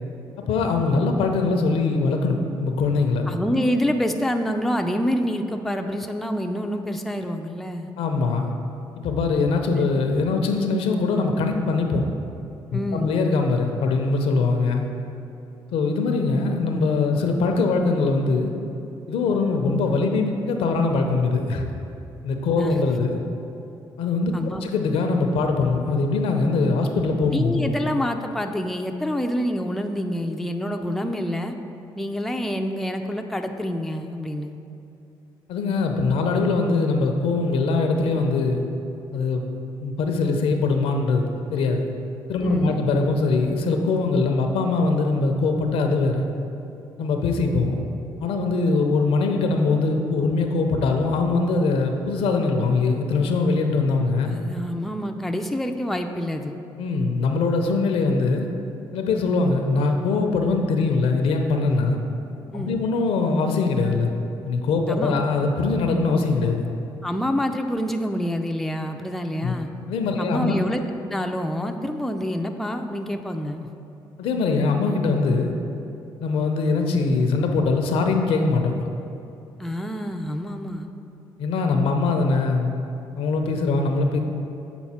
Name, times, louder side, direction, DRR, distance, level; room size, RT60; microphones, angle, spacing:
voice 1, 0.5-3.3 8.0-8.5 9.0-12.1 12.7-14.9 15.7-18.5 19.1-21.7 22.2-23.2 24.0-27.7 35.5-38.6 39.1-39.4 39.8-41.3 41.5-41.9 42.3-46.3 47.0-47.8 48.2-54.3 56.8-58.5 58.9-62.0 62.5-64.1 64.5-66.6 69.4-69.5 69.9-70.5 74.2-75.5 76.2-78.8 81.4-82.7 83.2-84.2, left 3 dB, 80° left, 4 dB, 0.6 m, -22 dB
voice 2, 3.3-7.9 9.8-9.9 12.7-13.2 22.6-22.8 24.3-24.6 27.3-31.6 32.0-34.6 42.4-42.8 54.3-56.6 62.5-62.8 64.9-65.3 67.0-69.7 70.2-70.8 71.1-73.7 79.6-80.9, equal, ahead, 4 dB, 0.4 m, -27 dB
7.0 x 4.3 x 4.2 m, 2.7 s
cardioid pair, 75°, 10 cm